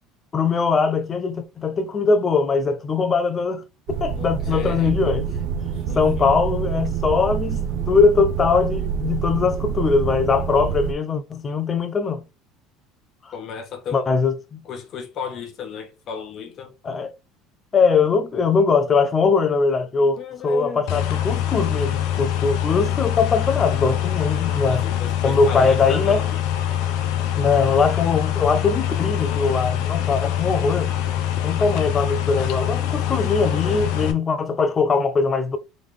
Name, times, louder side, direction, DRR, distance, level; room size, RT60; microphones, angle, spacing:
voice 1, 0.3-3.6 4.0-5.3 6.0-12.2 13.9-14.6 16.8-17.1 17.7-24.8 25.2-26.2 27.4-30.9 31.4-35.6, left 4 dB, 25° left, 0.6 m, -21 dB
sound 1, 3.9-10.9, right 7 dB, 65° right, 0.6 m, -26 dB
voice 2, 4.1-4.9 5.7-6.3 13.3-14.1 14.6-16.7 20.2-21.0 24.6-26.4 33.5-34.0, left 6 dB, 40° left, 1.2 m, -34 dB
sound 2, 20.9-34.1, left 11 dB, 70° left, 0.8 m, -24 dB
3.8 x 3.4 x 3.3 m
cardioid pair, 150°, 0 cm